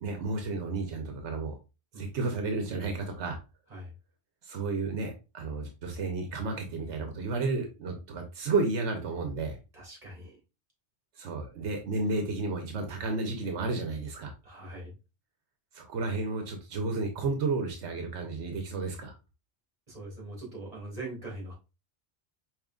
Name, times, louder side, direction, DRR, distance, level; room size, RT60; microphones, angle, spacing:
voice 1, 0.0-1.6 2.0-3.4 4.4-9.6 11.2-14.3 15.7-19.2, right 3 dB, 85° right, 4 dB, 1.0 m, -32 dB
voice 2, 9.7-10.4 14.4-15.0 19.9-21.5, right 2 dB, 35° right, -2 dB, 1.7 m, -42 dB
4.9 x 3.0 x 2.3 m, 0.29 s
omnidirectional pair, 1.1 m